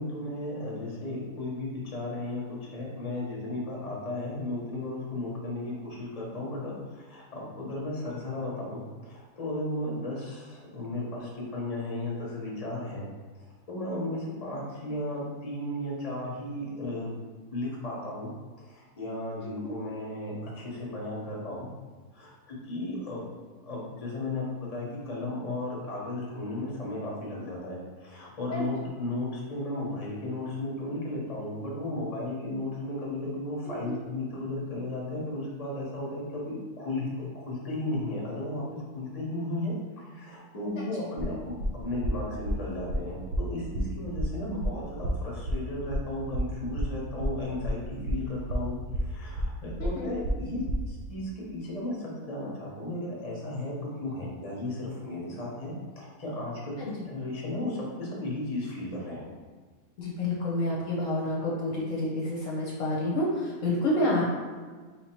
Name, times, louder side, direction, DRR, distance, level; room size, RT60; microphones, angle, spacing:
voice 1, 0.0-13.1 13.4-17.1 17.5-18.3 18.6-21.7 22.1-23.2 23.6-38.6 38.9-56.8 57.0-59.3, left 1 dB, 30° left, -4 dB, 0.9 m, -35 dB
voice 2, 40.8-41.1 49.8-50.1 56.8-56.9 60.0-64.3, left 1 dB, 65° left, -4 dB, 1.0 m, -29 dB
sound 1, 41.2-50.9, equal, 65° right, 1.1 m, -31 dB
3.6 x 2.8 x 4.4 m, 1.5 s
omnidirectional pair, 1.6 m